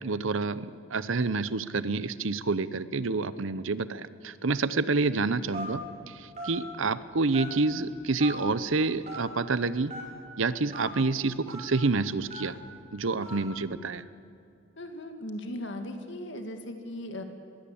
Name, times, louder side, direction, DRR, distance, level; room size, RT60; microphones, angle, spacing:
voice 1, 0.0-5.8 6.1-9.9 10.4-12.6 12.9-14.0, right 3 dB, 65° right, 16 dB, 0.8 m, -28 dB
Telephone, 5.5-5.8 6.4-6.5 7.3-7.7 8.2-8.3 9.0-9.2 9.9-10.0 10.7-10.8 11.5-11.6 12.3-12.5 13.2-13.4, right 1 dB, 30° right, 5.6 m, -38 dB
voice 2, 14.8-17.2, left 1 dB, 55° left, 6 dB, 2.3 m, -38 dB
21.5 x 16.5 x 8.7 m, 2.5 s
head